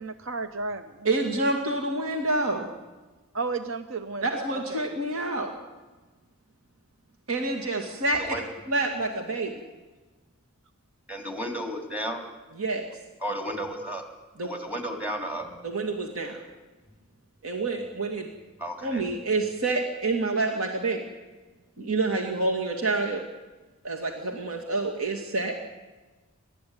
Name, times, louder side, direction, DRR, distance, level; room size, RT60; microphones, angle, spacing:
voice 1, 0.0-1.1 3.3-4.9, right 3 dB, 60° right, 9 dB, 0.9 m, -33 dB
voice 2, 1.0-2.7 4.2-5.5 7.3-8.4 8.7-9.5 12.6-12.8 14.4-14.5 15.6-16.4 17.4-18.3 18.8-21.0 21.8-23.2 23.8-25.6, right 2 dB, 75° right, 2 dB, 2.5 m, -27 dB
voice 3, 8.1-8.4 11.1-12.2 13.2-14.0 14.4-15.6 18.6-19.0, equal, 10° right, 4 dB, 3.1 m, -33 dB
29.5 x 13.5 x 9.7 m, 1.2 s
head